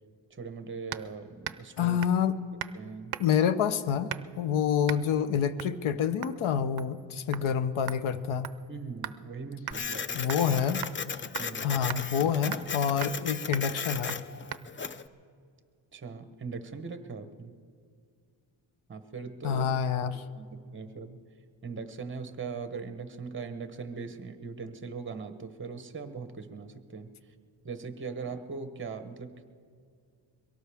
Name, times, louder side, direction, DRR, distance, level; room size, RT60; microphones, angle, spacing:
voice 1, 0.3-2.0 2.7-3.2 8.7-10.2 11.4-11.7 15.9-17.5 18.9-19.7 20.3-21.2 21.6-27.1 27.6-29.4, right 5 dB, 25° right, 9 dB, 1.0 m, -40 dB
sound 1, 0.9-1.1 1.4-1.7 2.0-2.2 2.6-2.8 3.1-3.5 4.1-4.4 4.9-5.0 5.6-5.8 6.2-6.4 6.8-7.0 7.3-7.5 7.9-9.2 9.7-9.8 10.3-10.5 10.8-11.0 11.3-11.5 11.9-12.0 12.5-12.7 13.0-13.2 13.5-13.7 14.1-14.2 14.5-14.6, right 12 dB, 55° right, 0.5 m, -39 dB
voice 2, 1.8-2.3 3.2-8.5 10.1-10.8 11.6-14.2 19.4-20.1, left 8 dB, 85° left, 13 dB, 0.8 m, -27 dB
Printer, 9.7-15.1, left 5 dB, 25° left, 0.4 m, -36 dB
23.0 x 17.5 x 3.5 m, 2.2 s
wide cardioid pair, 115°, 47 cm